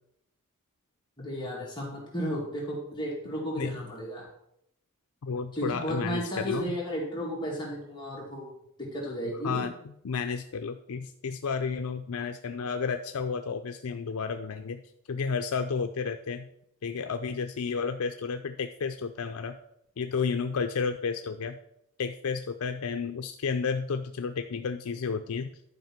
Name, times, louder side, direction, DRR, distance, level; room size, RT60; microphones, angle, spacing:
voice 1, 1.2-4.3 5.6-9.7, equal, 20° left, -4 dB, 2.1 m, -34 dB
voice 2, 5.2-6.8 9.4-9.7 10.0-14.8 15.1-16.5 16.8-19.6 20.0-21.6 22.0-25.5, left 5 dB, 80° left, 7 dB, 0.5 m, -32 dB
11.0 x 4.9 x 5.9 m, 0.76 s
head